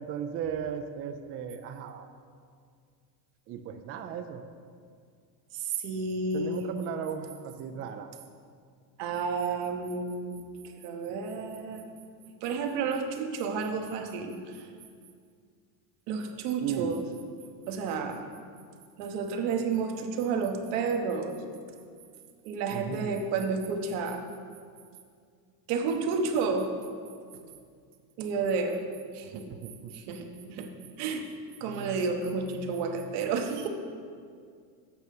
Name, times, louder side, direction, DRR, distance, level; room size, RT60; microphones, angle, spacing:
voice 1, 0.0-2.1 3.5-4.4 6.3-8.1 16.6-17.0 22.7-23.2 29.3-29.9, right 7 dB, 30° right, 6 dB, 0.4 m, -36 dB
voice 2, 5.5-6.7 9.0-11.9 12.4-14.7 16.1-17.0 17.7-18.2 19.0-21.4 22.4-24.2 25.7-26.7 28.2-28.8 29.1-29.4 29.8-30.7 31.0-31.3 31.6-33.7, right 4 dB, 70° right, 4 dB, 1.2 m, -31 dB
8.2 x 6.2 x 5.4 m, 2.2 s
supercardioid pair, 115°, 50 cm